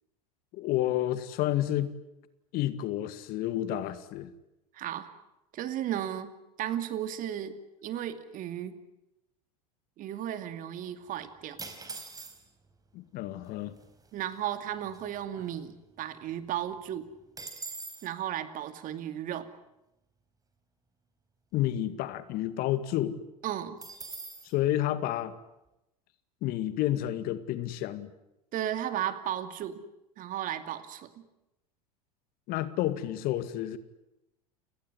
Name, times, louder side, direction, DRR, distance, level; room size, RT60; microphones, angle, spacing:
voice 1, 0.5-1.9 2.5-4.3 12.9-13.7 21.5-23.2 24.4-25.3 26.4-28.1 32.5-33.8, left 13 dB, 50° left, 13 dB, 2.1 m, -30 dB
voice 2, 4.7-5.1 5.5-6.3 6.6-7.6 7.8-8.8 10.0-11.6 14.1-17.1 18.0-19.5 23.4-23.8 28.5-29.8 30.2-31.1, right 11 dB, 45° right, 11 dB, 2.5 m, -34 dB
sound 1, 11.6-12.7 13.5-13.6 13.8-14.1 14.5-16.0 16.3-16.4 16.7-18.1 23.8-24.5, right 3 dB, 20° right, 4.6 m, -43 dB
30.0 x 18.5 x 9.9 m, 0.92 s
hypercardioid pair, 85°, 20 cm